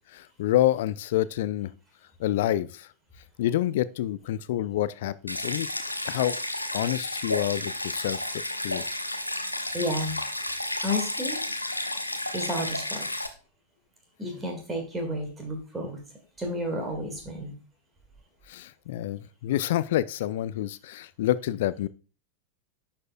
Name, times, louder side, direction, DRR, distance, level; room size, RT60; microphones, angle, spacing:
voice 1, 0.1-1.7 2.2-2.9 3.4-5.7 6.0-6.4 6.7-8.2 8.6-8.8 18.5-21.9, left 13 dB, 55° left, 0.3 m, -27 dB
Stream, 5.3-13.3, left 1 dB, 85° left, 0.7 m, -32 dB
voice 2, 9.7-10.2 10.8-11.4 12.3-13.1 14.2-16.0 16.4-17.5, equal, 15° right, 1.9 m, -31 dB
11.0 x 4.3 x 2.3 m
figure-of-eight pair, 90°, 0 cm